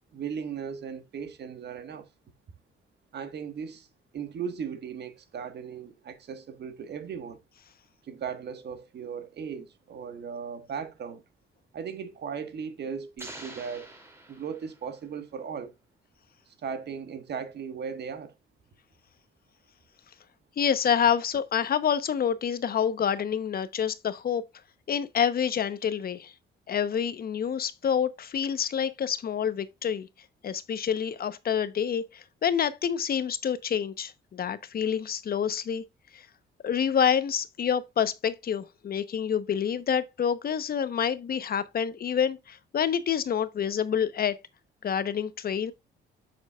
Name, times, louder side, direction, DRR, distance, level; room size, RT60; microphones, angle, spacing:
voice 1, 0.1-2.1 3.1-3.9 4.1-7.4 8.0-11.2 11.7-13.9 14.3-15.7 16.5-18.3, right 6 dB, 60° right, 1.4 m, -37 dB
sound 1, 13.2-15.1, right 1 dB, 15° right, 2.6 m, -46 dB
voice 2, 20.6-24.4 24.9-26.3 26.7-30.1 30.4-35.8 36.1-36.2 36.6-44.4 44.8-45.7, left 8 dB, 50° left, 0.8 m, -27 dB
7.2 x 6.3 x 2.3 m
cardioid pair, 90°, 20 cm